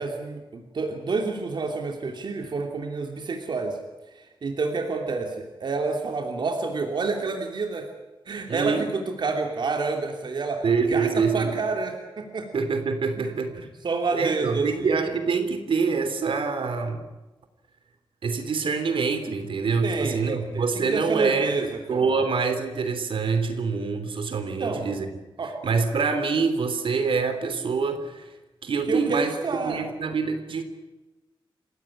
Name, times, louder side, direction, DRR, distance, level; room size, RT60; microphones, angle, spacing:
voice 1, 0.0-3.8 4.1-7.9 8.3-12.5 13.2-14.9 19.8-22.1 24.6-24.8 25.4-25.5 28.9-29.9, right 4 dB, 55° right, 3 dB, 2.8 m, -29 dB
voice 2, 8.5-8.9 10.6-11.6 12.5-13.7 14.1-17.1 18.2-25.1 25.6-28.3 28.6-29.3 29.7-30.6, right 5 dB, 75° right, 9 dB, 3.3 m, -25 dB
28.5 x 16.5 x 9.9 m, 1.1 s
wide cardioid pair, 170°, 9 cm